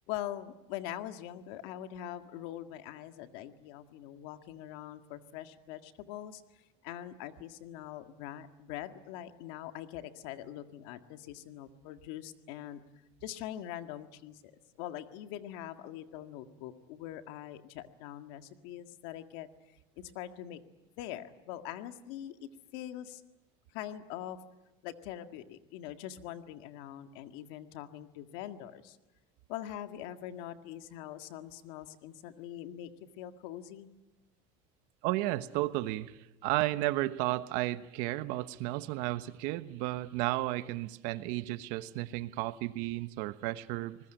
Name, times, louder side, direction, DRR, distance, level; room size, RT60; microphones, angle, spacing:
voice 1, 0.1-6.4 6.8-12.8 13.2-19.5 20.0-20.6 21.0-23.2 23.7-24.4 24.8-29.0 29.5-32.9 33.2-33.9, left 12 dB, 85° left, 8 dB, 1.8 m, -43 dB
voice 2, 35.0-44.0, right 17 dB, 80° right, 13 dB, 1.2 m, -33 dB
27.0 x 20.5 x 9.1 m, 0.99 s
cardioid pair, 130°, 13 cm